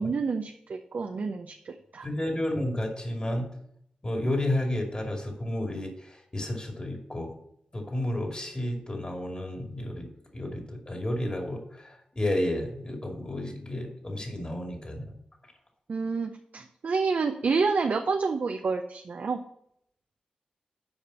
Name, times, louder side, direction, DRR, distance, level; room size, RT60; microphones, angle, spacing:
voice 1, 0.0-2.1 15.9-19.4, right 4 dB, 65° right, 5 dB, 0.6 m, -29 dB
voice 2, 2.0-3.6 4.0-7.3 7.7-15.1, left 1 dB, 30° left, 2 dB, 2.5 m, -31 dB
7.1 x 5.1 x 6.9 m, 0.72 s
cardioid pair, 50°, 3 cm